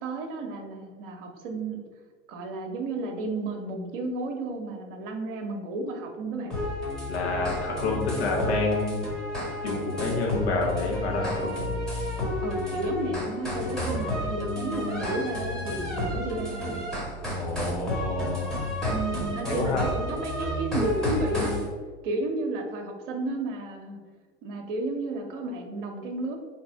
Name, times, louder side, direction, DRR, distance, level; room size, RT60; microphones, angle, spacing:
voice 1, 0.0-1.8 2.3-6.6 12.4-16.9 18.9-21.6 22.0-24.0 24.4-26.4, right 2 dB, 50° right, 4 dB, 0.9 m, -32 dB
sound 1, 6.5-21.7, left 1 dB, ahead, 1.1 m, -31 dB
voice 2, 7.1-9.0 9.6-11.6 17.2-18.6 19.4-19.8, left 3 dB, 60° left, -1 dB, 1.2 m, -29 dB
4.1 x 2.9 x 4.5 m, 1.5 s
figure-of-eight pair, 80°, 35 cm